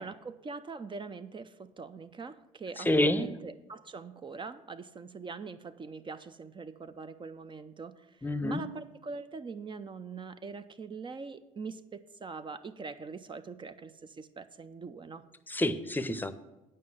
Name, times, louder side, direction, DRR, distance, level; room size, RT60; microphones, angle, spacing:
voice 1, 0.0-15.2, right 4 dB, 30° right, 11 dB, 0.6 m, -43 dB
voice 2, 2.8-3.4 8.2-8.8 15.5-16.3, left 1 dB, 10° left, 13 dB, 0.8 m, -28 dB
9.3 x 5.4 x 7.6 m, 1.0 s
hypercardioid pair, 55°, 17 cm